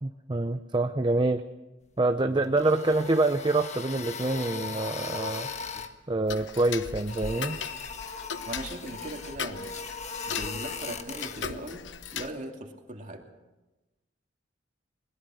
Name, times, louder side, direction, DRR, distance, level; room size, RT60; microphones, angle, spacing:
voice 1, 0.0-1.4 2.0-5.5 6.1-7.6, right 2 dB, 25° right, 7 dB, 0.6 m, -26 dB
sound 1, 2.4-5.9 6.9-11.4, left 5 dB, 40° left, 1.4 m, -38 dB
Tick-tock, 6.3-12.3, left 6 dB, 75° left, 0.9 m, -38 dB
voice 2, 8.4-9.7 10.3-11.8 12.1-13.2, right 1 dB, 45° right, 2 dB, 2.6 m, -39 dB
21.5 x 21.5 x 6.4 m, 1.1 s
head